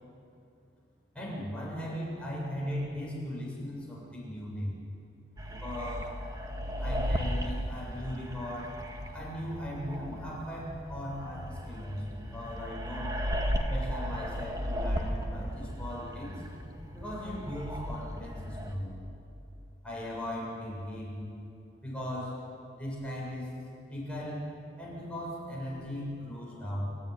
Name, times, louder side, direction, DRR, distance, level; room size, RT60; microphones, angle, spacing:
voice 1, 1.1-4.7 5.5-6.1 6.8-8.7 9.1-13.1 13.7-16.4 16.9-18.9 19.8-21.2 21.8-22.4 22.7-23.5 23.9-24.5 24.8-26.8, equal, 5° left, -5 dB, 7.6 m, -38 dB
sound 1, 5.4-18.8, equal, 20° right, 1.9 m, -35 dB
29.0 x 15.0 x 9.6 m, 2.7 s
head